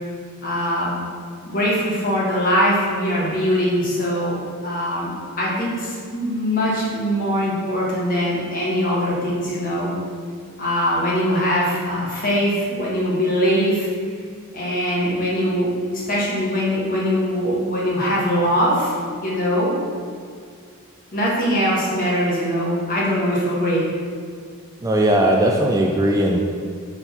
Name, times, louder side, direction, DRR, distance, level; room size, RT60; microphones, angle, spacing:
voice 1, 0.4-1.0 1.4-9.9 10.6-13.9 14.5-18.9 19.2-19.7 21.1-23.8, equal, 40° left, -6 dB, 1.5 m, -22 dB
voice 2, 24.8-26.4, right 1 dB, 15° right, 0 dB, 0.3 m, -18 dB
5.9 x 4.0 x 4.3 m, 2.1 s
head